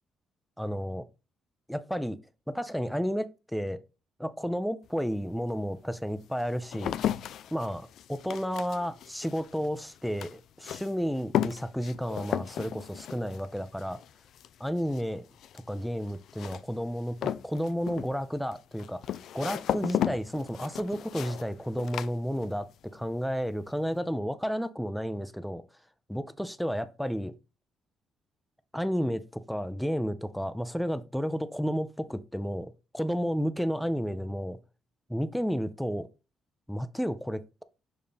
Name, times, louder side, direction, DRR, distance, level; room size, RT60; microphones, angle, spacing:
voice 1, 0.6-1.0 1.7-2.2 2.5-3.8 4.2-7.0 7.5-14.0 14.6-15.3 15.5-25.6 26.1-27.3 28.7-34.6 35.1-36.1 36.7-37.6, equal, ahead, 0.5 m, -32 dB
sound 1, 4.9-5.0 5.7-22.8 23.1-23.7, left 10 dB, 75° left, 0.3 m, -35 dB
6.8 x 2.7 x 5.2 m
cardioid pair, 90°, 0 cm